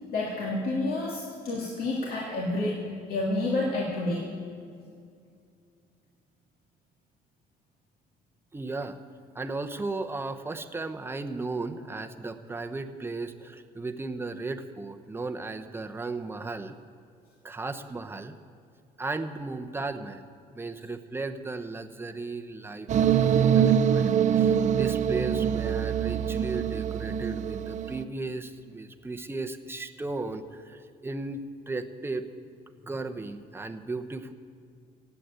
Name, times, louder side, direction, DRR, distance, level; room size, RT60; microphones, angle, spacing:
voice 1, 0.1-4.3, left 2 dB, 60° left, -3 dB, 2.5 m, -29 dB
voice 2, 8.5-9.0 9.3-16.7 17.4-18.3 19.0-20.2 20.5-31.4 31.7-32.3 32.9-34.3, right 3 dB, 15° right, 7 dB, 0.9 m, -35 dB
sound 1, 22.9-28.0, right 8 dB, 45° right, 0.6 m, -24 dB
16.5 x 8.2 x 9.0 m, 2.3 s
cardioid pair, 110°, 17 cm